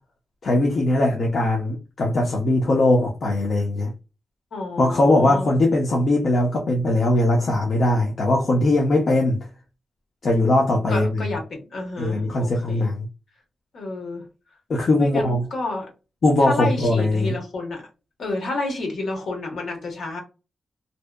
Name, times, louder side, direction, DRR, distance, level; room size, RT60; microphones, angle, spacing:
voice 1, 0.4-3.9 4.8-9.5 10.2-11.3 12.0-13.1 14.7-15.5 16.2-17.3, left 1 dB, 55° left, 0.5 m, -20 dB
voice 2, 4.5-5.5 10.9-12.9 13.7-14.3 15.0-15.9 16.4-17.9 18.2-20.2, left 2 dB, 75° left, 0.9 m, -30 dB
2.6 x 2.0 x 2.2 m
wide cardioid pair, 110°, 0 cm